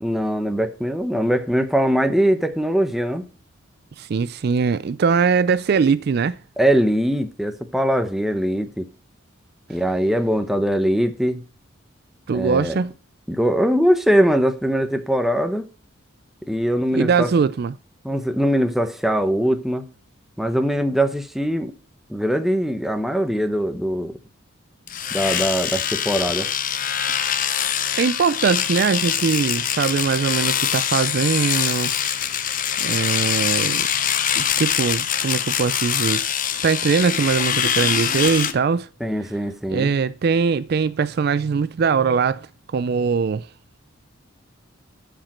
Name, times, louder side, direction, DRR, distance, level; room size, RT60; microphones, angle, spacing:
voice 1, 0.0-3.2 6.6-8.9 9.7-11.4 12.3-12.8 13.3-15.7 16.5-17.3 18.0-19.9 20.4-21.7 22.1-24.1 25.1-26.5 39.0-39.9, equal, ahead, 0.8 m, -21 dB
voice 2, 4.0-6.4 12.3-12.9 16.9-17.8 28.0-31.9 32.8-33.9 34.4-36.2 36.6-38.9 39.7-42.5 42.7-43.5, right 5 dB, 50° right, 0.3 m, -21 dB
Domestic sounds home sounds, 24.9-38.5, left 9 dB, 40° left, 0.8 m, -23 dB
13.0 x 5.1 x 4.4 m
head